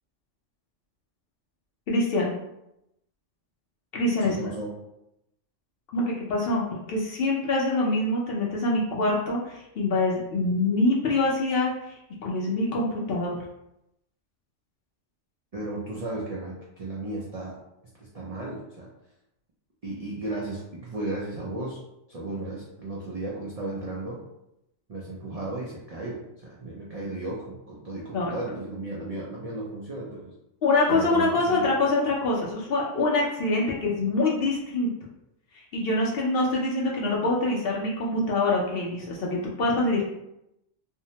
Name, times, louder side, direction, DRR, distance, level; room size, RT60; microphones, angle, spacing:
voice 1, 1.9-2.3 3.9-4.3 5.9-6.0 6.3-13.4 28.1-28.3 30.6-34.9 35.7-40.1, left 2 dB, 65° left, -3 dB, 0.6 m, -25 dB
voice 2, 4.2-4.7 15.5-17.6 18.0-18.9 19.8-21.8 22.1-24.2 24.9-30.3 30.9-31.7, right 2 dB, 65° right, -5 dB, 0.3 m, -34 dB
2.6 x 2.1 x 2.8 m, 0.85 s
omnidirectional pair, 1.3 m